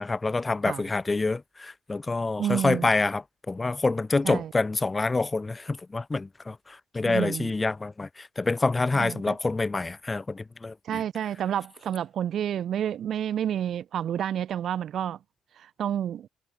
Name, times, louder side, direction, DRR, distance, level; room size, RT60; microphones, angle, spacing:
voice 1, 0.0-11.0, left 3 dB, 25° left, 0.5 m, -27 dB
voice 2, 2.4-2.9 4.2-4.5 7.0-7.5 8.9-9.3 10.8-15.2 15.6-16.3, right 10 dB, 65° right, 1.6 m, -29 dB
cardioid pair, 90°, 0 cm